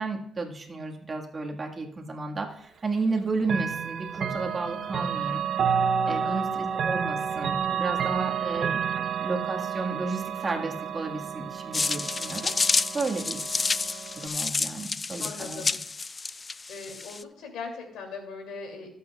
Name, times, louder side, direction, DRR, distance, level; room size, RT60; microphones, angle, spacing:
voice 1, 0.0-5.4 6.1-8.8 9.2-12.5 12.9-13.4 14.1-15.6, right 3 dB, 30° right, 2 dB, 1.6 m, -32 dB
Chime / Clock, 3.4-14.3, right 7 dB, 60° right, 0.7 m, -30 dB
voice 2, 6.0-6.4 15.2-15.8 16.7-18.9, left 4 dB, 85° left, 2 dB, 2.7 m, -40 dB
sound 1, 11.7-17.2, left 4 dB, 30° left, 0.4 m, -29 dB
18.0 x 7.9 x 2.3 m, 0.71 s
cardioid pair, 90°, 0 cm